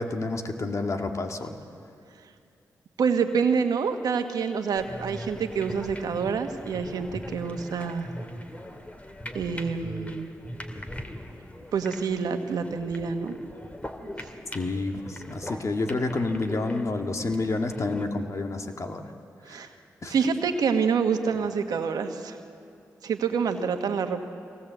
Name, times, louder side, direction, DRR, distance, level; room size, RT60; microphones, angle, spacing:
voice 1, 0.0-1.6 14.5-19.1 19.5-19.7 20.0-20.1, left 3 dB, 50° left, 4 dB, 2.0 m, -29 dB
voice 2, 3.0-8.1 9.3-10.3 11.7-13.3 14.2-14.3 19.4-19.7 20.1-22.4 23.0-24.2, right 6 dB, 80° right, 6 dB, 1.5 m, -27 dB
sound 1, 4.8-18.1, equal, 20° left, 2.4 m, -41 dB
22.5 x 18.0 x 8.1 m, 2.4 s
supercardioid pair, 45°, 7 cm